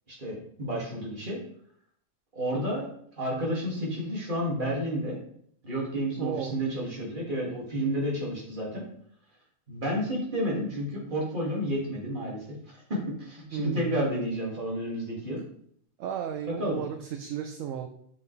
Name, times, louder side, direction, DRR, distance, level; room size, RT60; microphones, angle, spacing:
voice 1, 0.1-1.4 2.3-2.9 3.2-5.2 5.6-8.8 9.7-15.4 16.4-16.8, equal, 35° right, -4 dB, 2.2 m, -31 dB
voice 2, 6.2-6.5 13.5-14.0 16.0-17.9, right 9 dB, 70° right, 6 dB, 0.9 m, -33 dB
7.1 x 5.5 x 3.2 m, 0.66 s
omnidirectional pair, 1.5 m